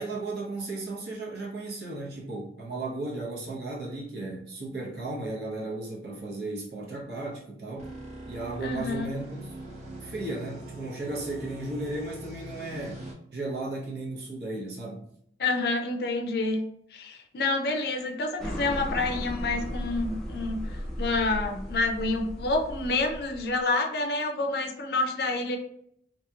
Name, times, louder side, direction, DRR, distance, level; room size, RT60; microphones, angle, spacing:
voice 1, 0.0-8.0 8.3-9.4 10.0-13.0 13.3-15.0, right 2 dB, 65° right, -4 dB, 0.9 m, -35 dB
sound 1, 7.8-13.1, right 1 dB, 40° right, 1.1 m, -42 dB
voice 2, 8.6-9.1 15.4-16.6 16.9-25.6, left 2 dB, 60° left, 4 dB, 0.5 m, -28 dB
sound 2, 18.4-23.6, equal, 5° left, 0.6 m, -36 dB
3.0 x 2.7 x 2.3 m, 0.69 s
head